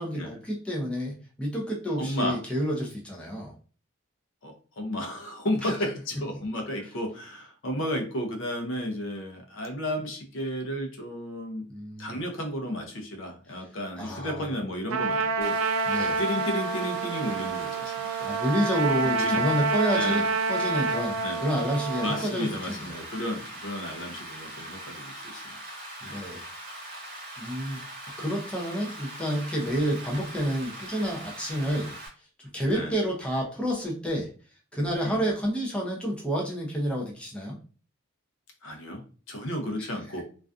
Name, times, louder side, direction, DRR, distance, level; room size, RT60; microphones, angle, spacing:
voice 1, 0.0-3.5 5.6-5.8 11.7-12.2 14.0-14.5 15.9-16.2 18.2-23.0 25.7-26.4 27.4-27.8 28.2-32.0 32.5-34.3 34.7-37.6 39.8-39.9, equal, 5° left, -3 dB, 0.5 m, -29 dB
voice 2, 2.0-2.4 4.4-11.6 12.0-15.6 16.0-18.3 19.0-19.4 19.9-20.3 21.2-21.4 22.0-25.4 26.0-26.2 32.7-32.9 35.0-35.2 38.6-39.0 39.3-40.2, equal, 70° left, 3 dB, 0.6 m, -33 dB
Trumpet, 14.9-22.2, right 4 dB, 90° right, 0.3 m, -28 dB
Rain, 15.4-32.1, right 1 dB, 45° right, 0.8 m, -41 dB
2.4 x 2.3 x 2.4 m, 0.39 s
head